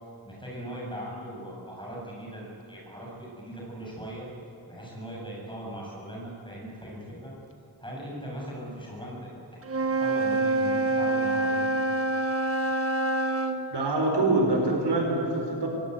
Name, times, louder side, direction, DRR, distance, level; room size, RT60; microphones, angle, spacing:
voice 1, 0.2-4.3 4.7-7.3 7.8-11.8, equal, 10° left, -3 dB, 7.4 m, -39 dB
Wind instrument woodwind instrument, 9.6-13.6, right 2 dB, 30° right, 1.6 m, -26 dB
voice 2, 13.7-15.7, right 2 dB, 65° right, 1 dB, 4.8 m, -25 dB
24.5 x 17.5 x 9.5 m, 3.0 s
wide cardioid pair, 140°, 45 cm